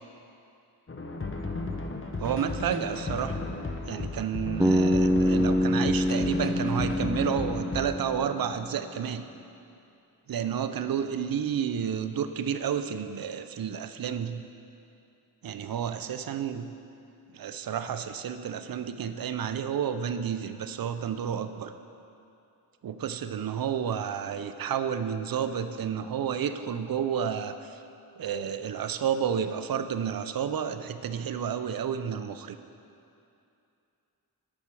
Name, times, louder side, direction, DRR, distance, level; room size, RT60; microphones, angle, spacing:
sound 1, 0.9-8.0, left 3 dB, 30° left, 0.8 m, -34 dB
voice 1, 2.2-3.4 3.9-9.2 10.3-14.4 15.4-16.7 17.3-21.7 22.8-27.8 28.2-32.6, right 8 dB, 60° right, 10 dB, 0.5 m, -31 dB
Bass guitar, 4.6-8.7, equal, 5° right, 0.4 m, -26 dB
8.8 x 5.7 x 6.2 m, 2.7 s
wide cardioid pair, 75°, 40 cm